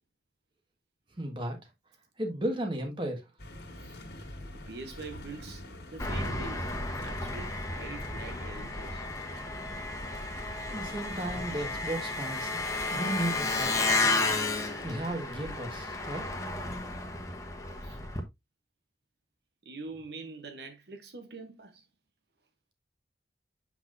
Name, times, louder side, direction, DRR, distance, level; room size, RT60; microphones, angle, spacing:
voice 1, 1.2-1.6 2.2-3.2 10.7-12.5 12.9-13.7 14.2-16.2, right 1 dB, 30° right, 1.5 m, -34 dB
sound 1, 3.4-14.9, left 1 dB, 65° left, 2.0 m, -47 dB
voice 2, 4.7-5.6 5.9-6.7 7.0-9.1 17.8-18.0 19.6-21.8, right 3 dB, 65° right, 0.9 m, -44 dB
Engine, 6.0-18.2, left 2 dB, 20° left, 1.1 m, -33 dB
7.3 x 6.0 x 2.5 m
head